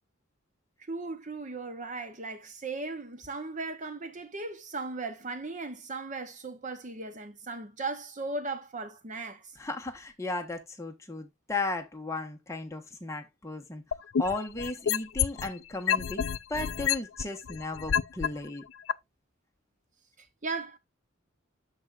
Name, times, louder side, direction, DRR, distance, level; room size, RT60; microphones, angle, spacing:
voice 1, 0.8-9.6 20.2-20.8, right 3 dB, 40° right, 0.8 m, -37 dB
voice 2, 9.6-13.8 14.2-18.6, left 2 dB, 15° left, 1.3 m, -35 dB
sound 1, 13.9-15.5 15.9-18.3 18.9-19.0, left 8 dB, 70° left, 0.4 m, -28 dB
13.0 x 4.7 x 2.5 m
head